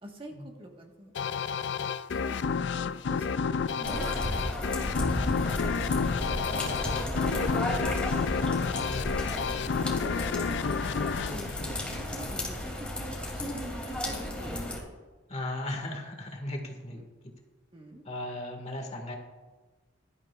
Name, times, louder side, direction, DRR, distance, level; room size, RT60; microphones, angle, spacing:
voice 1, 0.0-1.1 2.1-2.5 3.1-5.6 6.5-11.5 11.9-14.6 16.9-17.0 17.7-18.0, right 1 dB, 30° right, 1 dB, 1.4 m, -46 dB
sound 1, 1.2-12.4, left 5 dB, 70° left, 0.4 m, -30 dB
sound 2, 3.8-14.8, left 1 dB, 5° left, 2.6 m, -33 dB
voice 2, 15.3-17.1 18.1-19.2, left 1 dB, 35° left, 2 dB, 1.8 m, -36 dB
17.5 x 12.5 x 2.4 m, 1.3 s
head